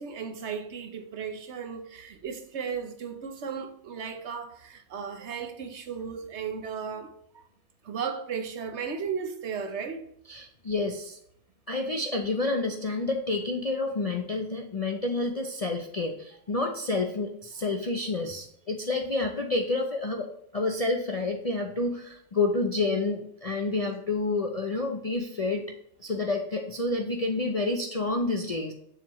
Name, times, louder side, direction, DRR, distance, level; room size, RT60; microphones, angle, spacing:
voice 1, 0.0-7.5 7.8-10.1, right 6 dB, 60° right, 1.0 m, -35 dB
voice 2, 10.3-11.2 11.7-20.3 20.5-25.7 26.0-28.7, left 3 dB, 40° left, 0.5 m, -29 dB
7.3 x 6.8 x 3.0 m
omnidirectional pair, 1.4 m